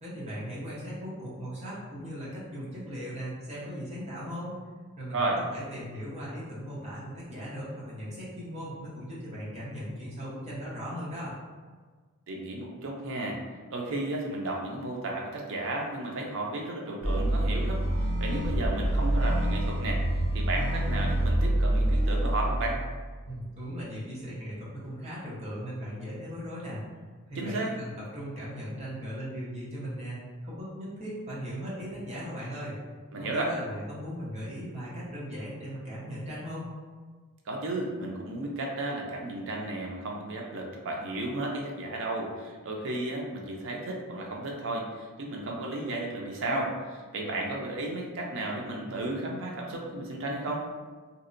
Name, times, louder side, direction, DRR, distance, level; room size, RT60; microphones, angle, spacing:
voice 1, 0.0-4.6 5.0-5.2 5.5-11.4 23.2-26.8 27.3-30.2 30.4-32.7 33.2-36.7, equal, 30° right, -7 dB, 0.8 m, -38 dB
voice 2, 12.3-13.4 13.7-20.0 20.3-22.8 27.4-27.7 33.1-33.5 37.5-50.6, right 2 dB, 60° right, -1 dB, 0.5 m, -33 dB
sound 1, 17.0-23.2, right 1 dB, 10° left, 0.6 m, -27 dB
2.7 x 2.1 x 2.4 m, 1.4 s
head